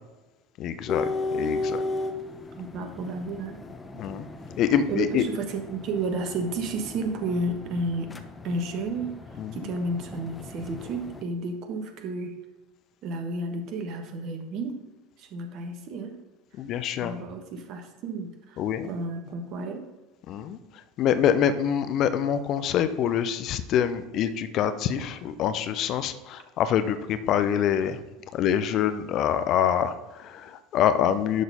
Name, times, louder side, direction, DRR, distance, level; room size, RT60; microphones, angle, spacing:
voice 1, 0.6-1.8 4.0-4.3 4.6-5.2 9.4-9.7 16.6-17.2 18.6-18.9 20.3-28.0 28.3-31.4, left 9 dB, 45° left, 10 dB, 0.6 m, -25 dB
sound 1, 0.9-11.2, left 3 dB, 15° left, 0.9 m, -36 dB
voice 2, 2.6-3.6 4.9-8.1 8.4-9.1 9.5-12.4 13.0-14.8 15.2-16.2 17.0-18.6 18.9-19.9, right 2 dB, 45° right, 6 dB, 1.3 m, -32 dB
11.5 x 4.0 x 5.4 m, 1.1 s
figure-of-eight pair, 70°, 0 cm